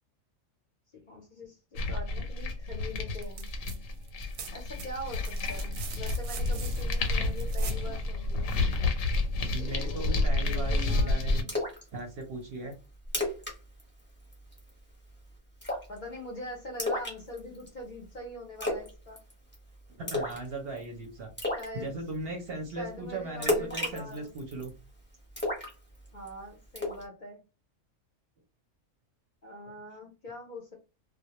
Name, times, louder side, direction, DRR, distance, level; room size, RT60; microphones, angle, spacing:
voice 1, 0.9-3.5 4.5-8.6 9.6-11.5 15.9-19.2 21.5-22.0 22.8-24.3 26.1-27.4 29.4-30.7, left 1 dB, 50° left, -1 dB, 0.6 m, -43 dB
sound 1, 1.7-11.4, left 2 dB, 85° left, 1.0 m, -30 dB
sound 2, 3.2-3.8 4.0-7.9 9.5-9.6, right 6 dB, 90° right, 1.0 m, -44 dB
voice 2, 9.5-11.5 11.9-12.7 20.0-21.3 21.7-24.7, right 2 dB, 55° right, 3 dB, 0.7 m, -38 dB
Splash splatter, 11.5-11.8 12.2-12.3 12.7-12.8 13.1-13.5 13.8-14.0 14.3-14.7 15.6-16.0 16.8-17.7 18.6-18.9 19.2-19.5 20.1-20.5 20.8-20.9 21.4-21.7 23.4-24.7 25.4-26.3 26.8-27.0, left 1 dB, 10° left, 0.7 m, -31 dB
2.2 x 2.1 x 2.8 m, 0.31 s
omnidirectional pair, 1.4 m